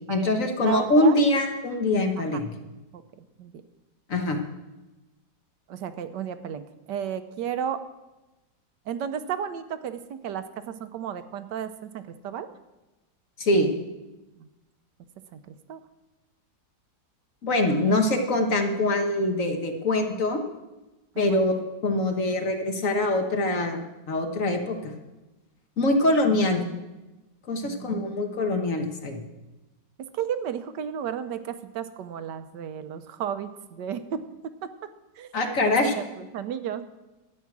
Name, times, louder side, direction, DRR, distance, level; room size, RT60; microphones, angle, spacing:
voice 1, 0.1-2.5 4.1-4.4 13.4-13.7 17.4-20.4 21.2-21.6 21.8-23.8 24.1-24.9 25.8-26.6 27.5-29.2 35.3-35.9, left 1 dB, 50° left, 4 dB, 1.5 m, -23 dB
voice 2, 0.6-1.2 2.2-2.4 2.9-3.0 3.4-3.5 4.2-4.3 5.7-7.8 8.9-12.5 14.4-14.5 15.3-15.8 17.9-18.0 21.1-21.5 27.6-27.9 30.1-34.2 35.2-35.3 35.6-36.8, right 8 dB, 80° right, 10 dB, 1.4 m, -33 dB
12.0 x 9.1 x 6.1 m, 1.1 s
omnidirectional pair, 1.9 m